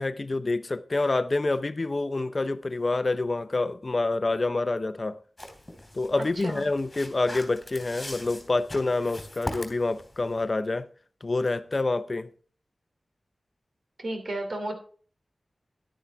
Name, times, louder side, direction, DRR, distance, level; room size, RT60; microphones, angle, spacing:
voice 1, 0.0-5.2 5.9-10.9 11.2-12.3, left 2 dB, 40° left, 0.6 m, -27 dB
sound 1, 5.4-10.4, left 1 dB, 15° left, 3.0 m, -41 dB
voice 2, 14.0-14.7, right 1 dB, 65° right, 2.8 m, -32 dB
11.0 x 9.9 x 3.5 m
wide cardioid pair, 85°, 0 cm